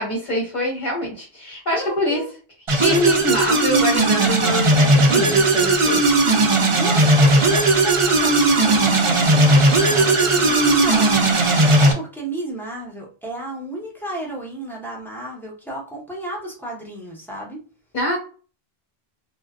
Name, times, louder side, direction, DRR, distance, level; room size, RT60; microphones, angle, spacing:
voice 1, 0.0-2.2 2.7-6.0 17.9-18.2, equal, 45° left, -3 dB, 0.9 m, -24 dB
voice 2, 1.7-2.3 6.7-17.6, right 1 dB, ahead, -4 dB, 0.7 m, -33 dB
sound 1, 2.7-11.9, right 2 dB, 40° right, 0.4 m, -16 dB
2.5 x 2.2 x 2.3 m, 0.38 s
omnidirectional pair, 1.2 m